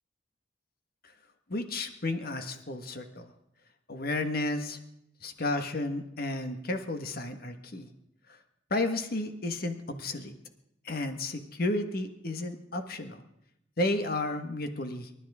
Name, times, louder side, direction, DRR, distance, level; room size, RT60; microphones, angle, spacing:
voice 1, 1.5-3.3 3.9-4.8 5.2-7.9 8.7-10.3 10.8-13.2 13.8-15.1, left 2 dB, 55° left, 7 dB, 1.5 m, -32 dB
28.5 x 13.0 x 3.7 m, 0.80 s
head